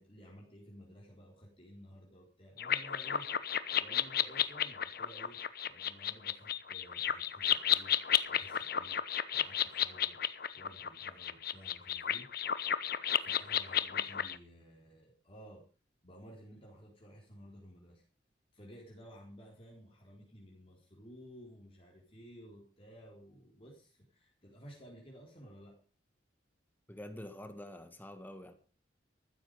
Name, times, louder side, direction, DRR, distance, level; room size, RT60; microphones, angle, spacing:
voice 1, 0.0-5.4 5.7-9.0 9.3-10.2 10.5-12.3 13.2-15.7 16.0-18.0 18.5-25.8, equal, 30° left, 4.3 m, -55 dB
sound 1, 2.6-14.4, left 10 dB, 55° left, 1.0 m, -33 dB
voice 2, 26.9-28.5, left 1 dB, 10° left, 1.5 m, -47 dB
14.5 x 13.0 x 5.1 m
head